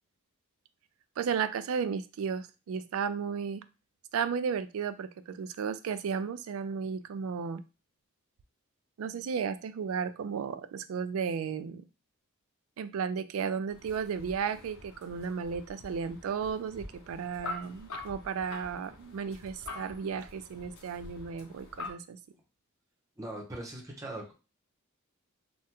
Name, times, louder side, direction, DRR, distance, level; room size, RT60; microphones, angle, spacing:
voice 1, 1.2-3.6 4.1-7.6 9.0-11.8 12.8-22.2, right 6 dB, 70° right, 12 dB, 0.3 m, -34 dB
sound 1, 13.7-21.9, left 3 dB, 75° left, 0.8 m, -45 dB
voice 2, 23.2-24.3, right 1 dB, 15° right, -1 dB, 0.7 m, -40 dB
3.4 x 2.1 x 2.8 m, 0.31 s
head